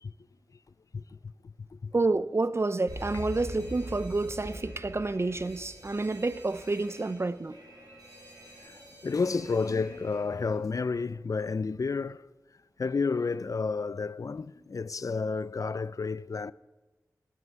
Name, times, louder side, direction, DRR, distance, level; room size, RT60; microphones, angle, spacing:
voice 1, 1.9-7.6, right 3 dB, 40° right, 0.6 m, -29 dB
Alarm, 2.9-10.6, equal, 70° right, 5.8 m, -44 dB
voice 2, 9.0-12.2 12.8-16.5, left 4 dB, 55° left, 0.4 m, -30 dB
9.3 x 9.2 x 9.3 m
cardioid pair, 45°, 7 cm